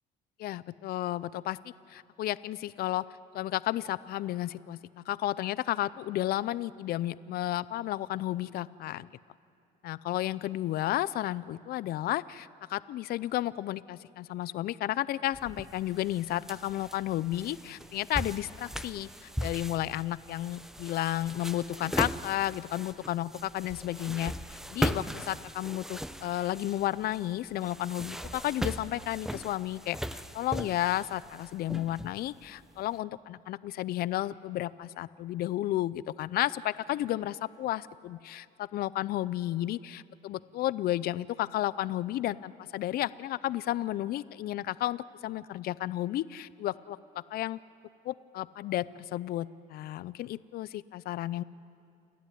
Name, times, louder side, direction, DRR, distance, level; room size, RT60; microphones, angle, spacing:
voice 1, 0.4-1.6 1.9-3.0 3.3-9.1 9.8-24.3 24.7-47.0 47.3-47.6 48.0-51.4, left 14 dB, 65° left, 18 dB, 0.5 m, -32 dB
sound 1, 15.3-32.8, equal, 5° right, 0.6 m, -38 dB
29.5 x 11.0 x 9.4 m, 2.6 s
cardioid pair, 110°, 17 cm